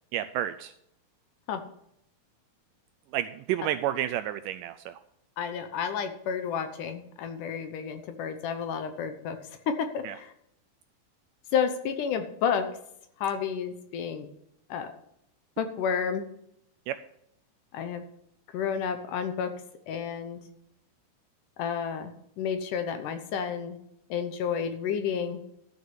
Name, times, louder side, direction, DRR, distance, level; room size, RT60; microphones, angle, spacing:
voice 1, 0.1-0.7 3.1-4.9 10.0-10.1 16.9-17.0, right 12 dB, 80° right, 11 dB, 1.9 m, -30 dB
voice 2, 5.4-10.3 11.5-12.7 13.2-14.3 14.7-14.9 15.6-16.2 17.7-18.0 18.5-19.5 19.9-20.4 21.6-23.8 24.1-25.4, left 7 dB, 70° left, 8 dB, 2.3 m, -31 dB
13.0 x 6.4 x 6.9 m, 0.76 s
omnidirectional pair, 4.2 m